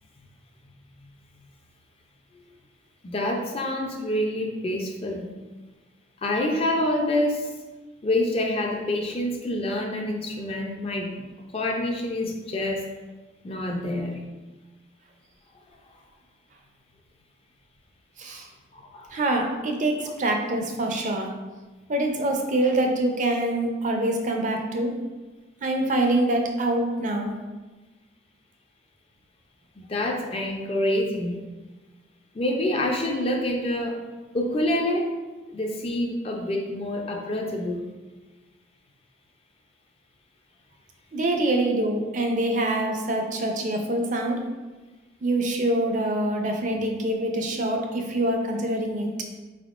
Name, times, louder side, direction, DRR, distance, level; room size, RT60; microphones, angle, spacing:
voice 1, 3.0-5.3 6.2-7.5 8.0-11.1 11.5-12.8 13.4-14.2 18.7-19.1 29.8-31.4 32.3-34.0 34.3-35.1 35.5-37.8, left 1 dB, 30° left, 1 dB, 0.4 m, -27 dB
voice 2, 19.1-21.3 21.9-24.9 25.6-27.3 41.1-44.5 45.2-49.1, right 1 dB, 40° right, 3 dB, 0.4 m, -25 dB
4.3 x 3.5 x 2.4 m, 1.2 s
head